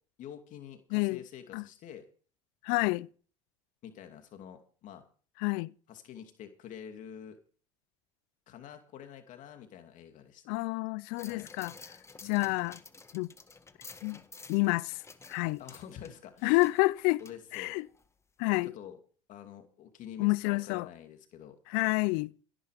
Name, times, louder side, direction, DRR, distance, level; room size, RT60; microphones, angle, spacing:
voice 1, 0.2-2.0 3.8-5.0 5.9-7.4 8.5-10.6 11.3-11.5 12.2-12.6 15.6-16.6 17.2-17.8 18.6-19.0 19.3-21.6, left 9 dB, 55° left, 2.6 m, -47 dB
voice 2, 0.9-1.2 1.5-1.6 2.6-3.1 5.4-5.7 10.5-11.7 12.2-12.8 13.1-13.3 14.0-14.2 14.5-15.0 15.3-15.6 16.4-17.2 17.5-17.9 18.4-18.7 20.2-20.9 21.7-22.3, left 25 dB, 70° left, 0.5 m, -28 dB
sound 1, 11.2-18.1 18.4-18.5, left 4 dB, 15° left, 1.6 m, -52 dB
16.5 x 10.0 x 5.1 m
supercardioid pair, 95°, 16 cm